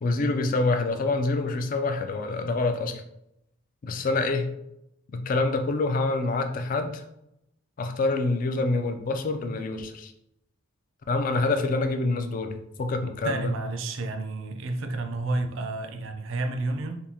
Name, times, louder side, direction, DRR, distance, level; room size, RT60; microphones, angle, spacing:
voice 1, 0.0-3.0 3.8-4.5 5.1-7.0 7.8-10.1 11.1-13.5, left 3 dB, 40° left, 7 dB, 0.3 m, -26 dB
voice 2, 13.2-17.0, right 2 dB, 60° right, 6 dB, 0.4 m, -30 dB
3.5 x 2.7 x 2.8 m, 0.80 s
head